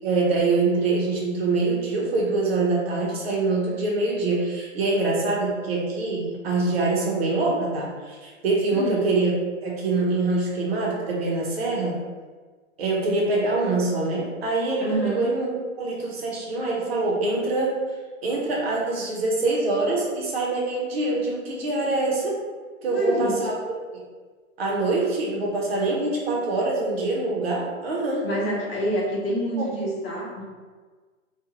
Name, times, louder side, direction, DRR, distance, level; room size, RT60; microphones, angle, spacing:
voice 1, 0.0-9.3 9.6-12.0 12.8-17.8 18.2-22.4 22.8-23.6 23.9-24.0 24.6-28.3 29.6-29.7, right 3 dB, 50° right, -3 dB, 0.8 m, -24 dB
voice 2, 8.7-9.0 14.8-15.3 22.8-23.4 28.2-30.4, equal, 45° left, -5 dB, 1.0 m, -27 dB
2.5 x 2.4 x 2.8 m, 1.4 s
hypercardioid pair, 155°, 41 cm